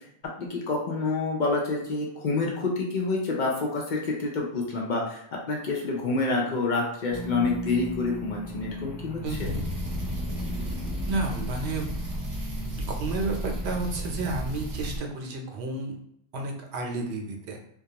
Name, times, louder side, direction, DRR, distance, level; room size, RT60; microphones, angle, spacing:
voice 1, 0.4-5.2 5.5-9.5, left 3 dB, 55° left, -2 dB, 0.6 m, -28 dB
sound 1, 7.1-15.1, left 1 dB, 5° right, 0.3 m, -38 dB
voice 2, 9.2-9.7 11.1-11.9 12.8-16.0 16.3-17.6, right 3 dB, 85° right, 2 dB, 0.9 m, -31 dB
sound 2, 9.3-15.0, right 1 dB, 55° right, 0.8 m, -33 dB
2.3 x 2.2 x 2.8 m, 0.74 s
omnidirectional pair, 1.1 m